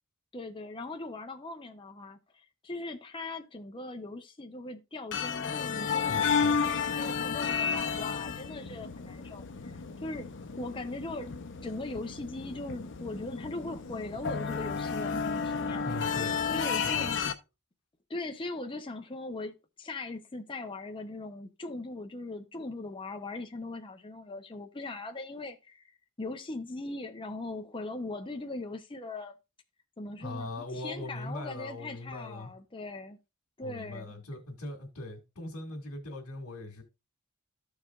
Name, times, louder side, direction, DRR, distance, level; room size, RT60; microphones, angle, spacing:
voice 1, 0.3-6.7 7.0-9.7 10.0-10.3 10.6-11.3 11.6-15.9 16.5-17.2 18.1-29.3 30.0-33.2 33.6-34.2, left 2 dB, 25° left, 0.7 m, -40 dB
sound 1, 5.1-17.3, left 6 dB, 60° left, 0.7 m, -32 dB
voice 2, 6.1-6.6 15.8-16.4 16.8-17.1 30.2-32.5 33.6-36.8, left 2 dB, 80° left, 1.9 m, -40 dB
14.0 x 4.8 x 2.4 m
head